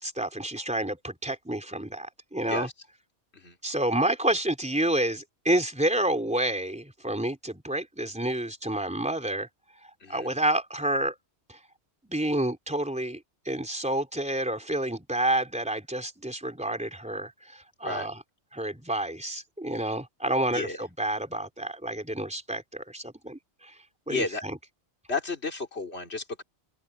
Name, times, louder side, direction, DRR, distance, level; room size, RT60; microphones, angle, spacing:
voice 1, 0.0-2.7 3.6-9.5 10.1-11.2 11.5-11.6 12.0-18.1 18.5-23.7 24.1-24.6, right 1 dB, 5° right, 3.6 m, -29 dB
voice 2, 24.1-24.4 25.1-26.4, left 3 dB, 70° left, 3.5 m, -32 dB
open air
omnidirectional pair, 1.1 m